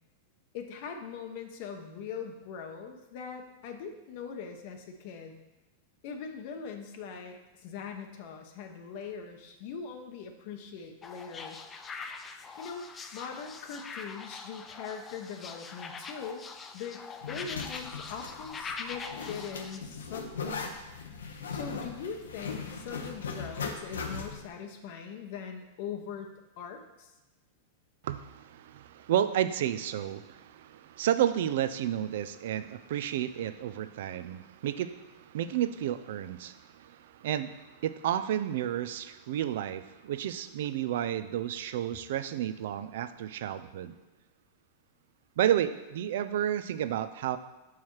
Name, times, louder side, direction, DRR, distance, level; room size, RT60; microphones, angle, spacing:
voice 1, 0.5-5.4 6.0-11.6 12.6-12.9 13.1-16.4 16.7-20.7 21.5-26.3 26.6-27.1, left 6 dB, 60° left, 4 dB, 0.7 m, -41 dB
sound 1, 11.0-19.8, left 4 dB, 25° left, 0.5 m, -43 dB
Zipper (clothing), 17.2-24.5, left 5 dB, 90° left, 0.7 m, -39 dB
voice 2, 28.0-43.9 45.4-47.4, right 11 dB, 70° right, 11 dB, 0.4 m, -31 dB
5.7 x 4.7 x 4.6 m, 1.1 s
hypercardioid pair, 110°, 0 cm